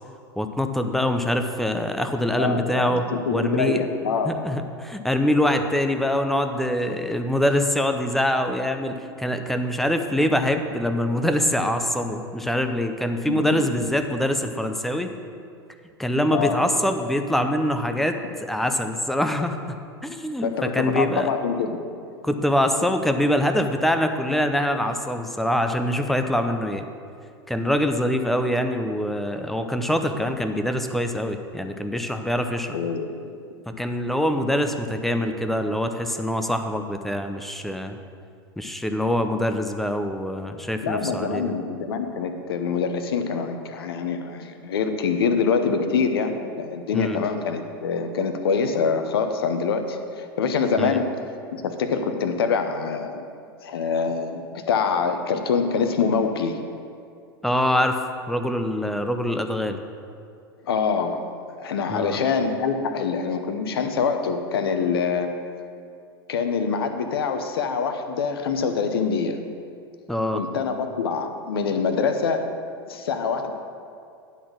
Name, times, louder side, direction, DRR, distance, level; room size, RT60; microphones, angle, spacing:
voice 1, 0.4-3.0 3.3-3.8 4.2-15.1 16.0-19.8 20.0-21.3 22.2-26.9 27.5-32.8 33.7-38.0 38.6-41.5 46.9-47.2 50.8-51.0 57.4-58.0 58.3-59.8 61.9-62.2 70.1-70.4, left 1 dB, ahead, 6 dB, 0.6 m, -24 dB
voice 2, 2.4-4.3 13.3-13.5 16.3-16.6 20.4-21.8 32.7-33.1 40.8-51.2 51.5-53.3 53.6-56.6 60.6-61.2 61.5-65.4 66.3-69.4 70.3-72.5 72.9-73.5, left 5 dB, 70° left, 7 dB, 0.8 m, -25 dB
10.0 x 4.1 x 6.2 m, 2.4 s
hypercardioid pair, 95°, 13 cm